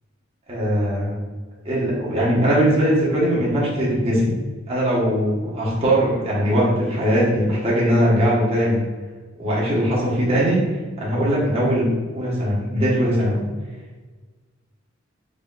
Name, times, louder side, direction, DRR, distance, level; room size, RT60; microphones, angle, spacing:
voice 1, 0.5-1.1 1.6-4.3 4.7-8.8 9.4-10.6 11.0-13.5, equal, 30° right, -7 dB, 1.1 m, -20 dB
3.8 x 3.2 x 2.3 m, 1.4 s
head